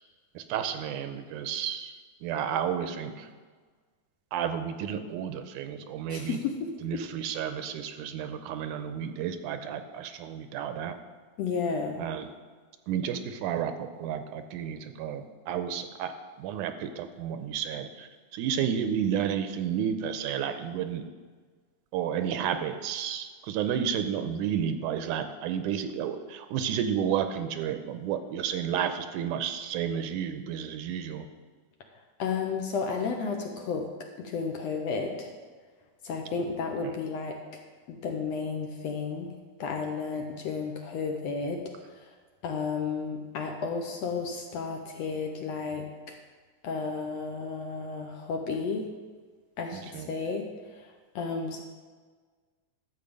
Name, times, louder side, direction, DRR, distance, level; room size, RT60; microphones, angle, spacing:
voice 1, 0.4-3.3 4.3-6.4 6.8-11.0 12.0-12.3 12.9-16.1 16.4-21.0 21.9-31.3 49.7-50.1, right 8 dB, 85° right, 8 dB, 2.1 m, -31 dB
voice 2, 6.1-6.6 6.9-7.0 11.4-12.0 32.2-33.9 34.2-35.3 36.0-37.3 37.9-39.3 39.6-41.6 41.9-42.1 42.4-45.8 46.6-48.8 49.6-50.4 50.7-50.9 51.1-51.6, left 5 dB, 70° left, 3 dB, 1.7 m, -32 dB
12.0 x 7.4 x 5.3 m, 1.5 s
omnidirectional pair, 3.7 m